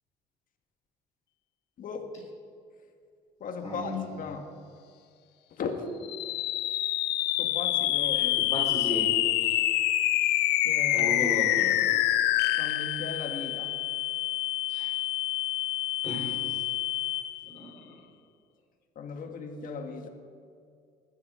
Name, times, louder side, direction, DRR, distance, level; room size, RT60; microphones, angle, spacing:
voice 1, 1.8-2.3 3.4-4.5 5.6-5.8 7.4-8.4 10.6-11.3 12.6-13.8 18.9-20.1, left 5 dB, 55° left, 5 dB, 1.7 m, -37 dB
voice 2, 3.6-4.0 8.1-9.1 9.4-9.6 10.9-11.7 14.7-14.9 16.0-16.6 17.4-17.7, left 1 dB, 20° left, -6 dB, 3.5 m, -35 dB
sound 1, 6.0-17.6, left 14 dB, 80° left, 0.6 m, -27 dB
19.5 x 9.6 x 4.9 m, 2.3 s
cardioid pair, 110°, 17 cm